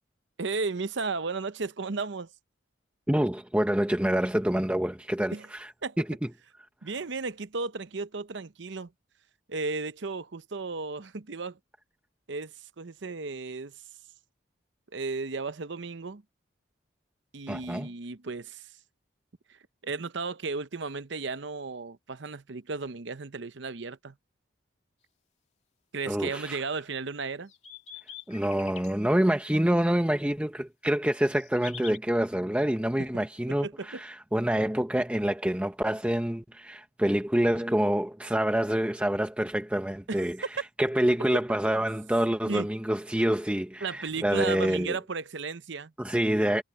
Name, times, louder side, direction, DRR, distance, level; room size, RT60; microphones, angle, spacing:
voice 1, 0.4-2.3 5.3-5.5 5.8-6.0 6.8-8.9 9.5-11.6 12.3-13.7 14.9-16.2 17.3-18.7 19.8-24.1 25.9-27.5 33.6-34.0 40.1-40.3 42.5-42.7 43.8-45.9, right 4 dB, 60° right, 0.8 m, -34 dB
voice 2, 3.1-5.7 6.0-6.3 17.5-17.9 26.1-26.6 28.3-40.4 40.8-45.0 46.0-46.6, right 1 dB, 5° right, 0.7 m, -27 dB
sound 1, 27.2-28.9 31.1-32.0, left 7 dB, 35° left, 2.7 m, -44 dB
head